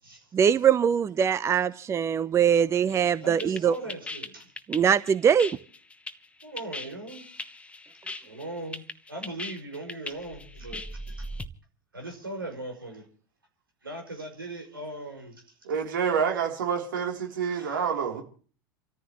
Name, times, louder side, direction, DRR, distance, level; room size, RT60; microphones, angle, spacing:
voice 1, 0.3-3.7 4.7-5.5, right 8 dB, 25° right, 0.8 m, -22 dB
sound 1, 2.9-11.5, left 2 dB, 10° left, 1.2 m, -39 dB
voice 2, 3.2-4.5 6.4-7.2 8.2-8.8 9.1-11.1 11.9-13.0 13.8-15.4 17.4-18.0, right 2 dB, 85° right, 5.6 m, -39 dB
voice 3, 15.6-18.2, right 6 dB, 70° right, 3.5 m, -28 dB
29.0 x 14.0 x 3.1 m
figure-of-eight pair, 85°, 11 cm